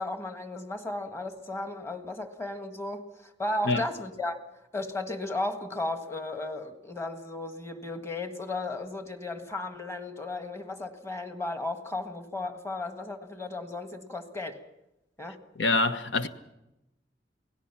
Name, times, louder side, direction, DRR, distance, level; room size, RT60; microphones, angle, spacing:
voice 1, 0.0-4.4 4.7-14.6 15.2-15.4, left 2 dB, 15° left, 1.6 m, -35 dB
voice 2, 15.6-16.3, left 3 dB, 90° left, 1.3 m, -25 dB
28.5 x 18.5 x 5.9 m
head